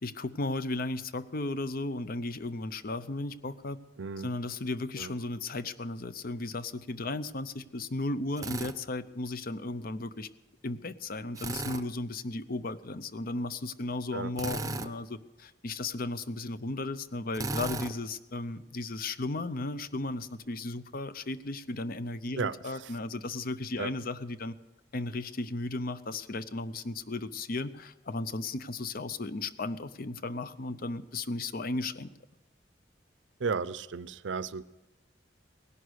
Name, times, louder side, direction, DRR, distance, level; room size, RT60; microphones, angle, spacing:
voice 1, 0.0-3.8 4.2-10.3 10.6-24.5 24.9-32.1, left 2 dB, 55° left, 14 dB, 0.7 m, -35 dB
voice 2, 4.0-4.3 5.0-5.1 14.1-14.3 22.4-22.6 23.8-23.9 33.4-34.6, right 5 dB, 80° right, 18 dB, 0.5 m, -33 dB
Drill, 8.4-8.8 11.4-11.8 14.4-14.9 17.3-17.9, right 3 dB, 20° right, 0.6 m, -35 dB
18.0 x 11.5 x 6.4 m, 1.1 s
head